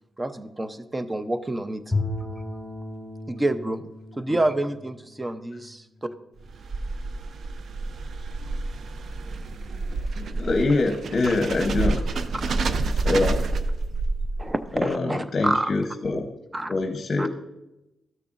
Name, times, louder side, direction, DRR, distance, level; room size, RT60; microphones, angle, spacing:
voice 1, 0.2-1.8 3.3-3.8 4.2-5.8 13.2-13.3 14.4-15.7 16.5-16.7 17.2-17.3, right 1 dB, 20° right, 10 dB, 0.7 m, -28 dB
Bowed string instrument, 1.9-6.1, left 2 dB, 5° left, 2.7 m, -34 dB
sound 1, 6.4-14.7, right 3 dB, 65° right, 0.5 m, -28 dB
voice 2, 10.2-12.1 13.0-13.4 14.7-16.3 16.7-17.3, left 3 dB, 50° left, 4 dB, 0.8 m, -24 dB
13.5 x 6.7 x 2.5 m, 0.93 s
cardioid pair, 70°, 0 cm